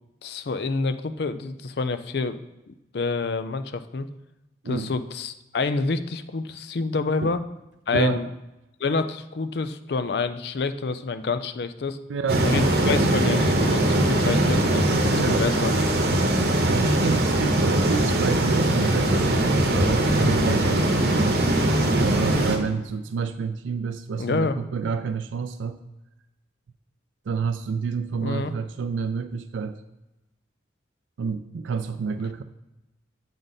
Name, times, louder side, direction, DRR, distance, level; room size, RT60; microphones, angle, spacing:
voice 1, 0.2-2.4 2.7-4.1 4.7-7.4 7.9-8.3 8.8-12.0 12.4-15.7 24.2-24.6 28.2-28.5, left 4 dB, 60° left, 11 dB, 0.5 m, -27 dB
voice 2, 12.1-12.5 15.1-15.4 16.7-21.4 22.0-25.8 27.3-29.8 31.2-32.4, right 5 dB, 85° right, 9 dB, 0.4 m, -28 dB
sound 1, 12.3-22.6, right 1 dB, 55° right, 0.9 m, -21 dB
7.4 x 5.1 x 4.0 m, 0.97 s
head